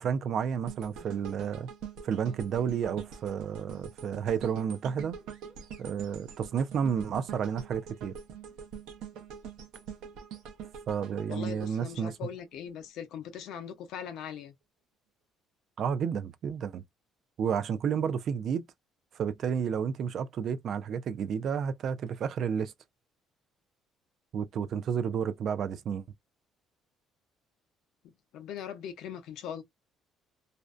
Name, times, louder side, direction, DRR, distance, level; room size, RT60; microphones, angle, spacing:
voice 1, 0.0-1.7 2.0-5.2 5.8-8.1 10.9-12.2 15.8-16.8 17.4-18.7 19.1-22.7 24.3-26.0, right 7 dB, 45° right, 0.3 m, -31 dB
sound 1, 0.7-12.8 13.3-13.4, right 7 dB, 85° right, 0.7 m, -44 dB
voice 2, 11.3-14.5 28.3-29.6, left 8 dB, 65° left, 0.6 m, -40 dB
2.5 x 2.1 x 2.3 m
cardioid pair, 160°, 0 cm